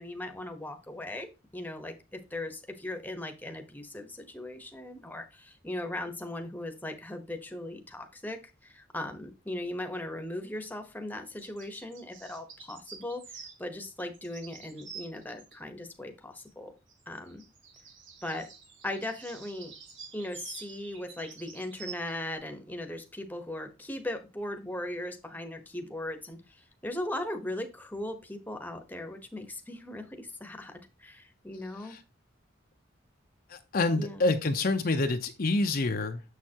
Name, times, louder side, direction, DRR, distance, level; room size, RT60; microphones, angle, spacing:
voice 1, 0.0-16.7 17.1-17.4 18.2-18.5 18.8-19.7 20.1-32.0 33.9-34.3, left 1 dB, 10° left, 6 dB, 1.0 m, -38 dB
sound 1, 11.4-13.6 14.0-15.6 16.9-22.1, right 6 dB, 75° right, 1.8 m, -48 dB
voice 2, 33.5-36.2, left 2 dB, 50° left, 6 dB, 0.7 m, -27 dB
7.1 x 6.5 x 2.8 m, 0.27 s
head